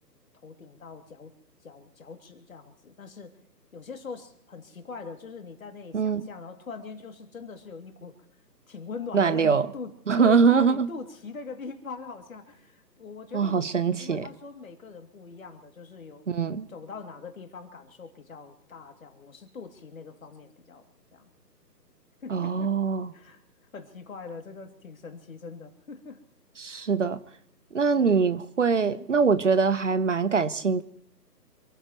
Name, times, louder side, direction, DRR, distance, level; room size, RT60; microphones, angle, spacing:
voice 1, 0.3-1.3 1.6-3.3 3.7-8.2 8.7-16.3 16.7-20.9 21.1-21.3 22.2-22.7 23.1-23.4 23.7-26.2 26.7-26.9 28.0-28.2 28.8-29.1, left 4 dB, 55° left, 5 dB, 2.8 m, -42 dB
voice 2, 5.9-6.3 9.1-9.6 10.1-10.9 13.3-14.3 16.3-16.7 22.3-23.1 26.6-27.2 27.7-30.8, right 5 dB, 45° right, 14 dB, 0.9 m, -23 dB
27.0 x 15.0 x 3.1 m, 0.66 s
figure-of-eight pair, 155°, 50 cm